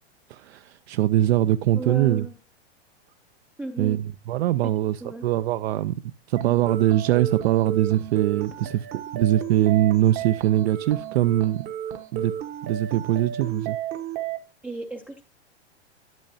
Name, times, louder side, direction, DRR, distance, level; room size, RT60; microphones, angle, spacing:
voice 1, 0.3-2.3 3.8-5.9 6.3-11.6 12.1-12.3 12.6-13.8, right 13 dB, 70° right, 0.5 m, -22 dB
voice 2, 1.7-2.4 3.6-4.0 5.0-5.3 14.6-15.2, right 3 dB, 5° right, 0.4 m, -34 dB
sound 1, 6.4-14.4, right 11 dB, 30° right, 0.7 m, -33 dB
12.0 x 6.6 x 2.7 m
supercardioid pair, 145°, 33 cm